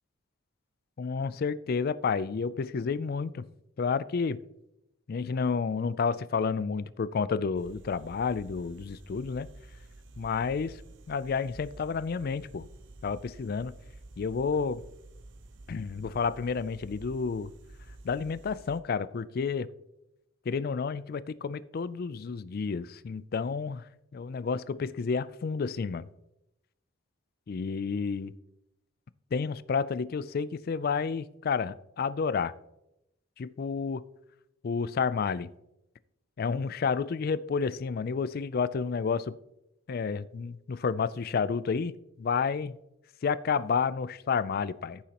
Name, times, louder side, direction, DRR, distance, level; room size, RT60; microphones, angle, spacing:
voice 1, 1.0-3.4 3.8-4.4 5.1-9.5 10.2-10.8 11.1-12.7 13.0-13.7 14.2-14.8 15.7-17.5 18.0-19.7 20.5-23.8 24.1-26.1 27.5-28.3 29.3-32.5 33.4-34.0 34.6-35.5 36.4-39.3 39.9-42.8 43.2-45.0, left 5 dB, 50° left, 17 dB, 0.4 m, -30 dB
sound 1, 7.5-18.8, right 2 dB, 65° right, 0.8 m, -50 dB
14.5 x 7.0 x 2.9 m, 0.87 s
head